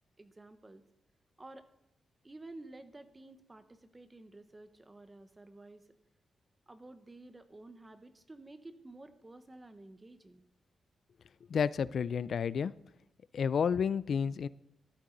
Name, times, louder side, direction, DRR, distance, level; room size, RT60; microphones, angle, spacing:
voice 1, 0.2-0.8 1.4-1.7 2.2-5.8 6.7-10.4, right 2 dB, 20° right, 10 dB, 0.9 m, -52 dB
voice 2, 11.5-12.7 13.3-14.5, left 7 dB, 60° left, 18 dB, 0.4 m, -30 dB
14.0 x 12.5 x 4.0 m, 0.81 s
wide cardioid pair, 130°, 0 cm